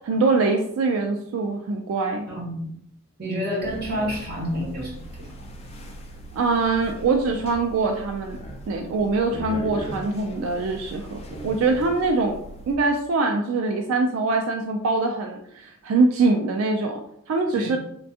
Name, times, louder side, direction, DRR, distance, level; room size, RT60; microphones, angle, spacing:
voice 1, 0.0-2.3 6.3-8.4 8.7-12.4 12.7-17.0 17.3-17.8, right 3 dB, 90° right, 3 dB, 0.3 m, -23 dB
voice 2, 2.3-2.7 3.2-5.5 17.5-17.7, equal, 50° right, -4 dB, 1.1 m, -29 dB
sound 1, 3.6-12.8, right 1 dB, 30° left, 0.4 m, -39 dB
3.3 x 2.2 x 2.7 m, 0.71 s
head